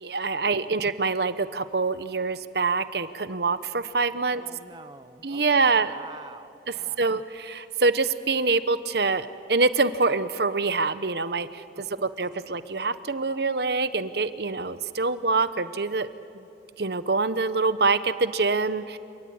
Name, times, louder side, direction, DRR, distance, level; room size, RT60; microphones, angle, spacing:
voice 1, 0.0-4.4 5.2-5.9 7.0-11.5 12.2-16.1 16.8-19.0, right 3 dB, 60° right, 13 dB, 1.0 m, -25 dB
voice 2, 4.3-7.0 12.0-12.1, right 3 dB, 25° right, 10 dB, 0.6 m, -47 dB
30.0 x 18.0 x 9.7 m, 2.5 s
head